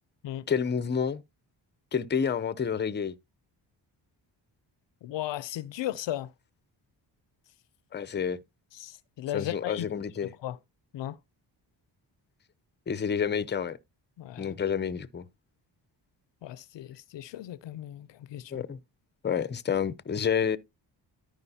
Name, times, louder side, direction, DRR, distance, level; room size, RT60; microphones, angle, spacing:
voice 1, 0.5-1.2 1.9-3.1 7.9-8.4 9.3-10.3 12.9-13.8 14.4-15.3 18.5-18.8 19.2-20.6, left 7 dB, 25° left, 0.6 m, -29 dB
voice 2, 5.0-6.3 8.7-9.9 10.2-10.6 10.9-11.2 14.2-14.5 16.4-18.6, left 13 dB, 70° left, 0.6 m, -36 dB
13.5 x 4.9 x 2.7 m
cardioid pair, 60°, 46 cm